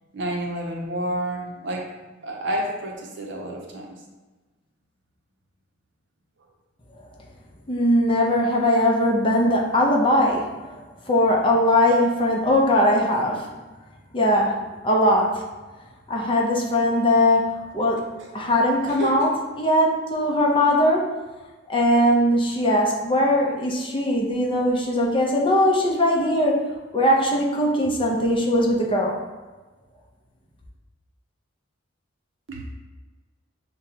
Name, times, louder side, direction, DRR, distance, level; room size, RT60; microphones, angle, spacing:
voice 1, 0.1-1.9 2.2-4.0 18.2-18.5 18.9-19.3 32.5-32.7, right 1 dB, 65° right, 1 dB, 0.7 m, -30 dB
voice 2, 7.7-10.5 11.1-13.4 14.1-14.6 14.8-15.4 16.1-18.0 18.3-19.3 19.6-21.1 21.7-26.6 26.9-29.2, left 1 dB, 25° left, -2 dB, 0.7 m, -20 dB
6.5 x 2.2 x 2.8 m, 1.3 s
head